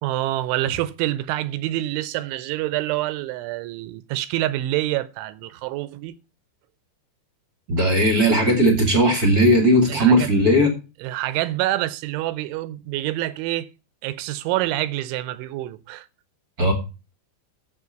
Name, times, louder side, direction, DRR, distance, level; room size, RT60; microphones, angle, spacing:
voice 1, 0.0-6.2 9.9-10.3 11.0-13.7 14.0-16.1, right 15 dB, 85° right, 3.1 m, -26 dB
voice 2, 7.7-10.7 16.6-16.7, equal, 45° right, 1.2 m, -17 dB
8.3 x 7.7 x 6.6 m
omnidirectional pair, 5.4 m